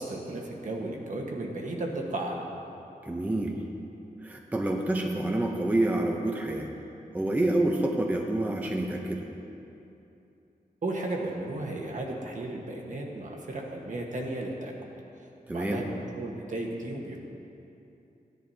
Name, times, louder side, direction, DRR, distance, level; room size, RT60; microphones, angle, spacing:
voice 1, 0.0-2.4 10.8-14.7 15.5-15.9 16.1-17.2, right 2 dB, 55° right, 0 dB, 1.3 m, -34 dB
voice 2, 3.0-3.6 4.2-6.7 7.1-9.3 15.5-15.8, right 1 dB, 10° right, 1 dB, 0.6 m, -28 dB
15.5 x 10.5 x 2.8 m, 2.8 s
wide cardioid pair, 175°, 15 cm